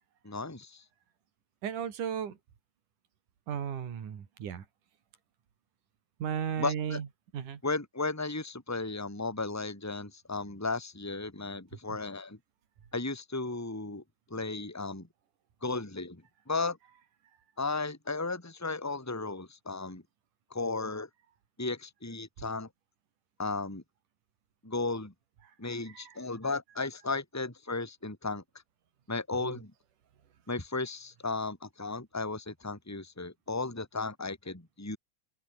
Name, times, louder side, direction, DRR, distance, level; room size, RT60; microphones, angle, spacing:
voice 1, 0.2-0.8 6.6-7.0 7.6-12.4 12.9-14.0 14.3-15.1 15.6-16.2 16.5-16.8 17.6-20.0 20.5-21.1 21.6-22.7 23.4-23.8 24.6-25.1 25.6-28.4 29.1-29.7 30.5-35.0, left 3 dB, 5° left, 3.3 m, -35 dB
voice 2, 1.6-2.4 3.5-4.7 6.2-7.1 7.3-7.6 25.6-26.2 29.4-29.6, right 8 dB, 80° right, 4.2 m, -35 dB
open air
omnidirectional pair, 3.6 m